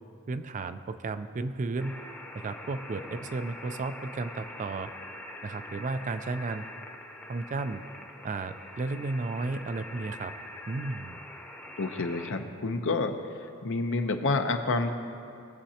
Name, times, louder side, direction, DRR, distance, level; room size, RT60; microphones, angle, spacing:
voice 1, 0.3-2.0 2.3-4.9 5.4-6.6 7.3-7.8 8.2-10.3 10.7-11.2, right 3 dB, 35° right, 10 dB, 0.4 m, -33 dB
sound 1, 1.8-12.3, left 1 dB, 10° left, 0.8 m, -44 dB
voice 2, 11.8-13.1 13.6-14.9, left 3 dB, 60° left, 6 dB, 0.8 m, -28 dB
20.0 x 7.3 x 2.9 m, 2.5 s
head